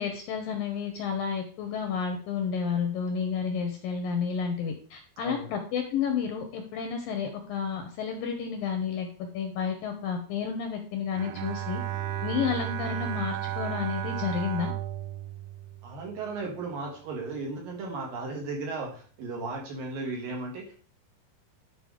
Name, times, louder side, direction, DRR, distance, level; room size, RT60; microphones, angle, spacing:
voice 1, 0.0-11.8 12.2-14.7, left 6 dB, 75° left, 5 dB, 2.2 m, -31 dB
Bowed string instrument, 11.1-16.5, right 12 dB, 85° right, 2.2 m, -34 dB
voice 2, 15.8-20.8, right 3 dB, 60° right, -1 dB, 3.4 m, -35 dB
11.0 x 4.9 x 4.9 m, 0.42 s
omnidirectional pair, 5.0 m